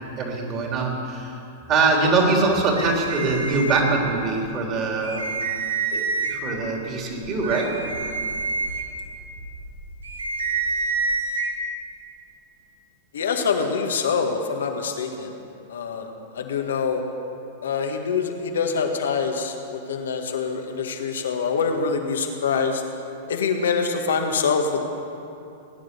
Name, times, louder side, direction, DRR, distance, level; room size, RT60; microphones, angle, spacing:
voice 1, 0.2-1.3 1.7-5.2 5.9-7.7, right 3 dB, 35° right, 0 dB, 3.4 m, -23 dB
sound 1, 2.7-4.3 4.7-4.8 5.0-6.6 7.1-11.5, right 4 dB, 90° right, 1.4 m, -28 dB
voice 2, 13.1-15.4 15.7-16.1 16.3-17.0 17.6-22.8 23.3-24.8, left 5 dB, 75° left, 4 dB, 1.8 m, -25 dB
19.0 x 9.9 x 6.9 m, 2.8 s
hypercardioid pair, 105°, 0 cm